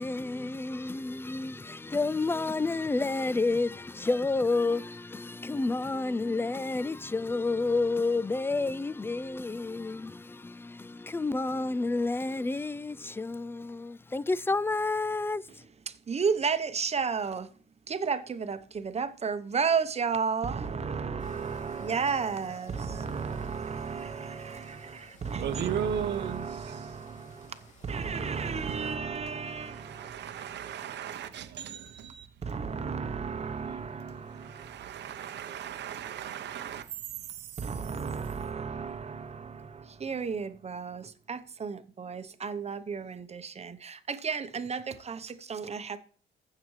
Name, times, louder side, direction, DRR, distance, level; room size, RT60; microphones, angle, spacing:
voice 1, 0.0-15.6, left 3 dB, 10° left, 0.3 m, -30 dB
voice 2, 15.9-17.5 17.9-30.3 32.4-35.0 37.6-46.0, right 5 dB, 35° right, 0.9 m, -33 dB
sound 1, 21.2-29.0, left 2 dB, 35° left, 2.4 m, -58 dB
sound 2, 21.3-25.8, right 4 dB, 15° right, 1.4 m, -52 dB
voice 3, 25.3-27.0 28.7-28.8 29.4-32.3 33.7-33.8 34.2-38.0, right 9 dB, 60° right, 0.8 m, -37 dB
15.0 x 5.8 x 3.2 m
cardioid pair, 90°, 20 cm